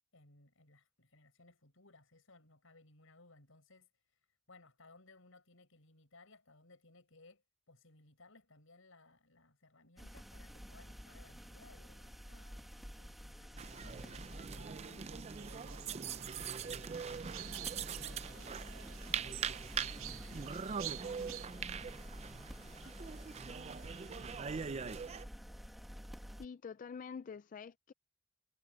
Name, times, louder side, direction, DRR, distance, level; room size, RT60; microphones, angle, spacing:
voice 1, 0.1-4.2 4.5-18.7 19.0-21.2 21.6-24.9, left 2 dB, 80° left, 5.1 m, -64 dB
sound 1, 10.0-26.5, equal, ahead, 1.5 m, -50 dB
sound 2, 13.6-25.2, right 6 dB, 30° right, 0.4 m, -42 dB
sound 3, 15.4-21.5, right 13 dB, 75° right, 0.6 m, -50 dB
voice 2, 26.4-27.9, left 6 dB, 40° left, 0.3 m, -46 dB
head